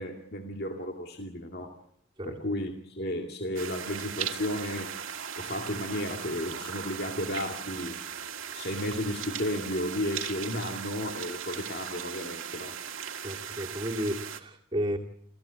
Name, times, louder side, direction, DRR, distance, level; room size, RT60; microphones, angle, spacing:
voice 1, 0.0-1.8 2.2-4.9 5.4-8.0 8.5-12.8, left 1 dB, 50° left, 3 dB, 2.3 m, -33 dB
sound 1, 3.5-14.4, right 8 dB, 75° right, 1.9 m, -38 dB
voice 2, 13.2-15.0, equal, 25° right, 0 dB, 2.4 m, -32 dB
28.0 x 15.0 x 8.9 m, 0.68 s
head